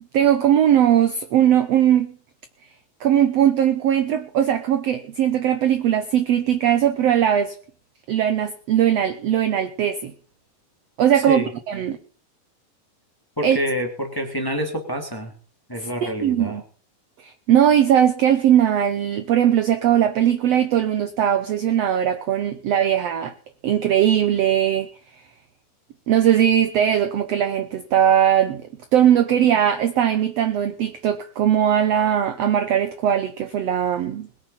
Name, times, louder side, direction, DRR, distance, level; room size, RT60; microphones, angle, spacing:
voice 1, 0.1-2.1 3.0-7.5 8.1-10.1 11.0-12.0 13.4-13.6 15.8-16.6 17.2-23.3 23.6-24.9 26.1-28.6 28.9-34.3, right 10 dB, 70° right, 1.6 m, -19 dB
voice 2, 13.4-15.3 15.7-16.6, equal, 5° left, 2.4 m, -27 dB
21.5 x 8.9 x 5.7 m
omnidirectional pair, 4.0 m